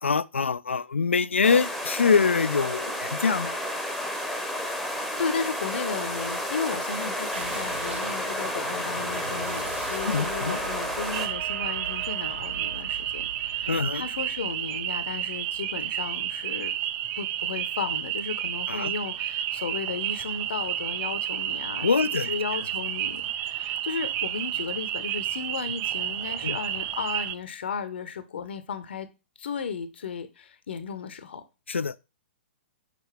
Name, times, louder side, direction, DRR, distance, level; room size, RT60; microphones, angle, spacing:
voice 1, 0.0-3.6 10.0-10.6 13.7-14.1 18.7-18.9 21.8-22.3 26.4-26.6 31.7-31.9, left 5 dB, 80° left, 0.4 m, -24 dB
sound 1, 1.4-11.3, left 1 dB, ahead, 1.0 m, -31 dB
voice 2, 4.6-16.7 17.2-21.9 22.2-29.1 29.4-31.4, left 6 dB, 65° left, 0.7 m, -35 dB
sound 2, 7.3-16.5, right 5 dB, 70° right, 1.1 m, -40 dB
sound 3, 11.1-27.3, right 12 dB, 30° right, 0.4 m, -31 dB
6.7 x 4.5 x 3.2 m
figure-of-eight pair, 115°, 6 cm